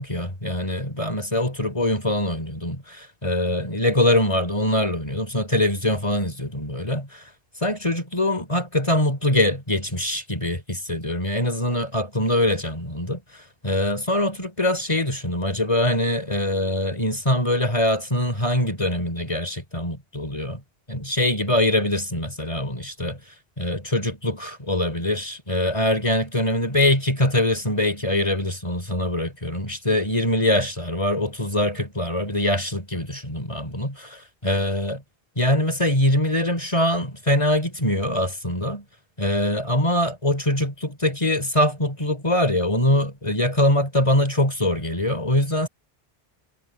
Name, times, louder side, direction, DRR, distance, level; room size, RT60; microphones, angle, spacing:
voice 1, 0.0-7.2 7.6-13.2 13.6-20.6 20.9-23.2 23.6-35.0 35.4-38.8 39.2-45.7, left 1 dB, 30° left, 3.8 m, -23 dB
omnidirectional pair, 1.0 m